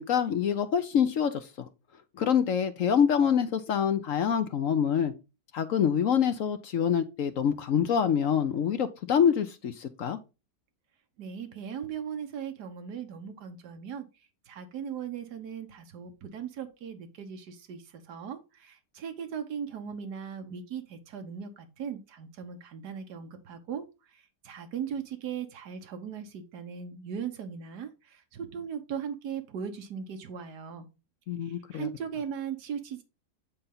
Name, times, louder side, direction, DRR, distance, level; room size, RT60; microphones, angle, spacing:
voice 1, 0.0-1.5 2.2-5.1 5.5-10.2 31.3-31.9, left 8 dB, 60° left, 0.9 m, -26 dB
voice 2, 11.2-14.0 14.5-17.8 18.1-23.8 24.4-30.9 31.4-33.0, right 7 dB, 65° right, 1.8 m, -38 dB
8.9 x 4.2 x 3.9 m
omnidirectional pair, 1.9 m